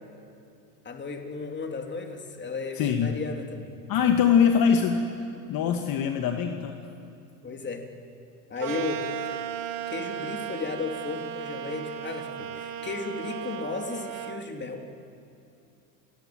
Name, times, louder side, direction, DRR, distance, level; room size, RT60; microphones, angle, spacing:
voice 1, 0.8-3.7 7.4-7.9 8.5-9.3 9.9-14.8, left 4 dB, 25° left, 4 dB, 3.1 m, -34 dB
voice 2, 2.8-3.2 3.9-6.8, left 7 dB, 45° left, 5 dB, 1.8 m, -23 dB
sound 1, 8.6-14.4, right 10 dB, 45° right, 1.6 m, -35 dB
29.5 x 20.0 x 7.8 m, 2.7 s
supercardioid pair, 105°, 47 cm